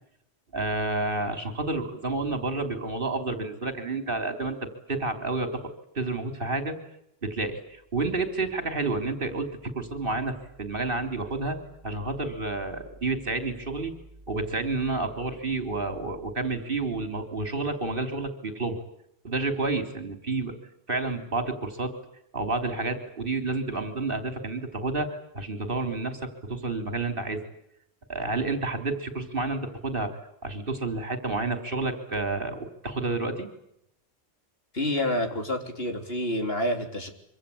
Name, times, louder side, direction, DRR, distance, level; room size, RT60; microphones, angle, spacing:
voice 1, 0.5-6.8 7.2-13.9 14.3-18.8 19.2-20.6 20.9-21.9 22.3-27.5 28.1-33.5, right 3 dB, 55° right, 7 dB, 3.6 m, -30 dB
voice 2, 34.7-37.1, left 1 dB, 60° left, 5 dB, 3.8 m, -28 dB
25.5 x 25.0 x 8.5 m, 0.75 s
omnidirectional pair, 1.1 m